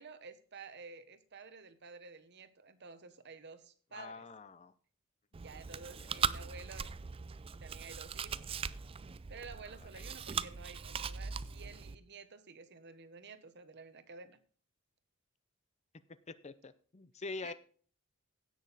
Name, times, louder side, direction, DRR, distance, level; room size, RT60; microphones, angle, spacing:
voice 1, 0.0-4.3 5.4-6.9 7.6-8.5 9.3-14.4 17.4-17.5, right 4 dB, 55° right, 1.0 m, -51 dB
voice 2, 3.9-4.7 5.7-6.2 9.9-10.0 16.3-17.5, left 3 dB, 30° left, 0.6 m, -46 dB
Chewing mastication, 5.3-12.0, right 6 dB, 25° right, 0.4 m, -40 dB
16.5 x 6.3 x 4.0 m
head